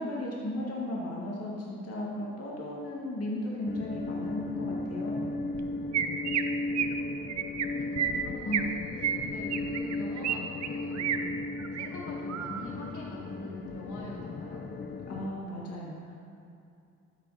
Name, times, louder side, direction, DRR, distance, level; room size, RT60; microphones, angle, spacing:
voice 1, 0.0-5.3 8.4-8.9 15.1-16.2, left 1 dB, 55° left, -3 dB, 2.0 m, -35 dB
sound 1, 3.7-15.3, left 3 dB, 35° left, 0.6 m, -36 dB
Chirp tweet, 5.5-5.6 5.9-6.4 6.7-7.0 7.3-7.7 8.0-8.7 9.0-10.4 10.6-11.2 11.6-11.9 12.3-12.7, right 9 dB, 60° right, 0.7 m, -30 dB
voice 2, 7.6-11.1 11.6-14.6, left 1 dB, 80° left, -4 dB, 2.5 m, -44 dB
12.5 x 8.4 x 4.2 m, 2.6 s
cardioid pair, 90°, 30 cm